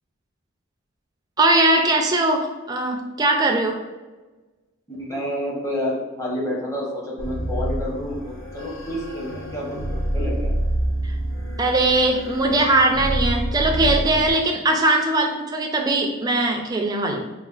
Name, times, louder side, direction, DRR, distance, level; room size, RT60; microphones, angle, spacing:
voice 1, 1.4-3.8 11.6-17.3, right 2 dB, 20° right, 3 dB, 0.3 m, -20 dB
voice 2, 4.9-10.5 13.8-14.0, left 1 dB, 15° left, -4 dB, 0.7 m, -29 dB
sound 1, 7.2-14.3, right 1 dB, 65° left, 0.9 m, -27 dB
4.9 x 2.3 x 2.3 m, 1.2 s
head